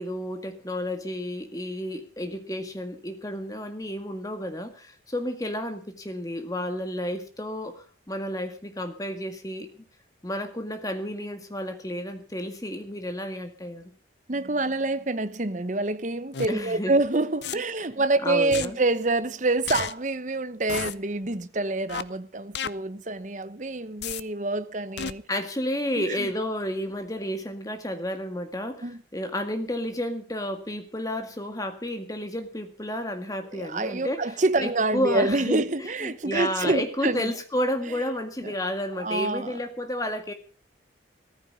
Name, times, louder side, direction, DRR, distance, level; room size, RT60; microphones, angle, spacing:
voice 1, 0.0-9.7 10.2-13.9 16.5-16.9 18.2-18.8 25.3-34.2 34.6-40.3, equal, 20° left, 1.9 m, -31 dB
voice 2, 14.3-25.2 26.0-26.3 28.8-29.0 33.5-37.3 37.9-38.0 38.4-38.5 39.0-39.6, right 2 dB, 40° right, 0.9 m, -27 dB
sound 1, 16.3-16.5 17.4-17.5 18.5-18.7 19.7-19.9 20.7-20.9 21.9-22.0 22.5-22.7 24.0-24.2 25.0-25.1, left 7 dB, 65° left, 0.7 m, -31 dB
15.0 x 14.0 x 5.4 m
head